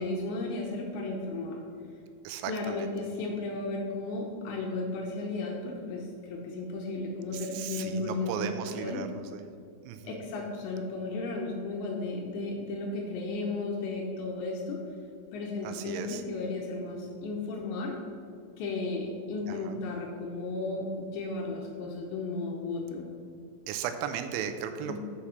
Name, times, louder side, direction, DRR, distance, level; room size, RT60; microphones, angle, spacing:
voice 1, 0.0-1.6 2.5-9.0 10.0-14.8 15.3-18.0 18.6-23.1 24.9-25.0, left 3 dB, 75° left, 1 dB, 2.7 m, -34 dB
voice 2, 2.2-2.9 7.3-9.5 9.8-10.2 15.6-16.2 19.5-19.8 23.7-25.0, right 8 dB, 85° right, 8 dB, 3.0 m, -36 dB
7.1 x 6.4 x 5.7 m, 2.5 s
omnidirectional pair, 5.7 m